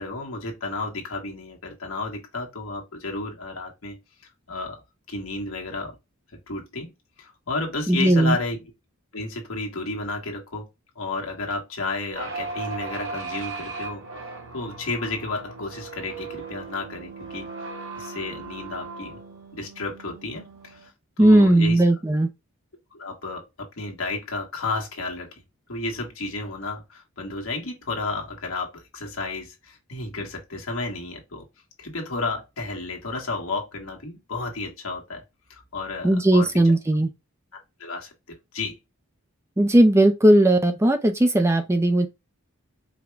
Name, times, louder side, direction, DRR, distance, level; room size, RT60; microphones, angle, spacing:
voice 1, 0.0-4.0 4.5-4.8 5.1-5.9 6.5-6.9 7.2-8.7 9.1-10.7 10.9-14.0 14.5-17.5 18.0-19.2 19.5-20.9 21.2-21.8 22.9-25.3 25.7-31.5 31.8-35.2 35.5-36.8 37.8-38.8, left 3 dB, 70° left, 1.5 m, -32 dB
voice 2, 7.9-8.4 21.2-22.3 36.0-37.1 39.6-42.1, right 1 dB, 10° right, 0.4 m, -17 dB
sound 1, 12.1-20.9, right 4 dB, 60° right, 1.2 m, -37 dB
4.9 x 2.2 x 3.2 m
head